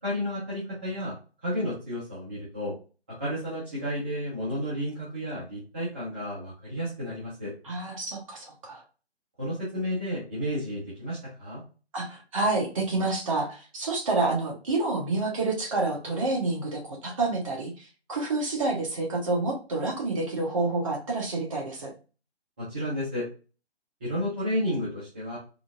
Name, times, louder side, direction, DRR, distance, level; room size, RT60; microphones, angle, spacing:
voice 1, 0.0-1.2 1.4-2.7 3.2-7.5 9.4-11.6 22.6-23.2 24.0-25.4, equal, 10° right, -11 dB, 0.5 m, -32 dB
voice 2, 7.6-8.8 11.9-21.9, right 3 dB, 30° right, 0 dB, 0.9 m, -28 dB
3.7 x 2.6 x 2.4 m, 0.34 s
figure-of-eight pair, 155°, 33 cm